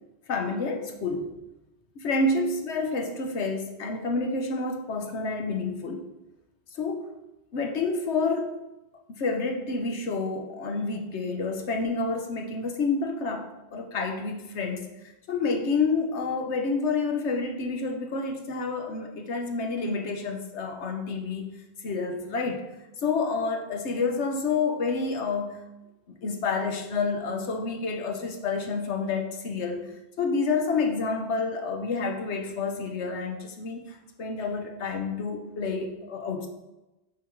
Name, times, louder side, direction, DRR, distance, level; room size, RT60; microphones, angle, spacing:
voice 1, 0.3-1.3 2.0-6.0 6.7-7.1 7.5-8.6 9.1-21.6 21.8-22.6 23.0-25.6 26.2-29.9 30.2-36.5, left 4 dB, 90° left, 4 dB, 1.3 m, -29 dB
9.3 x 3.9 x 4.6 m, 1.0 s
omnidirectional pair, 1.1 m